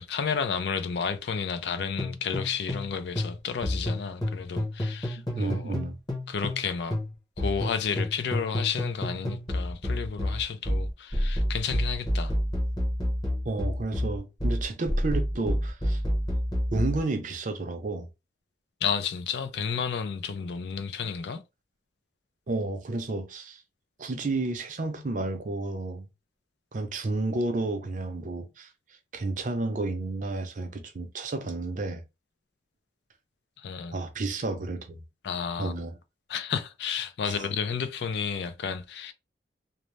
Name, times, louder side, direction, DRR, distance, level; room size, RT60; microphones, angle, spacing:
voice 1, 0.0-5.7 6.3-7.0 7.4-12.3 18.8-21.4 33.6-34.0 35.2-35.8 36.3-39.1, left 6 dB, 65° left, 0.4 m, -31 dB
sound 1, 2.0-2.9 3.2-6.6 6.9-17.0, equal, 20° left, 0.8 m, -29 dB
voice 2, 5.3-5.9 13.5-16.0 16.7-18.1 22.5-23.6 24.0-26.1 26.7-28.7 29.1-32.0 33.9-35.0 35.6-35.9 37.2-37.5, right 2 dB, 45° right, 0.5 m, -31 dB
2.6 x 2.0 x 3.1 m
head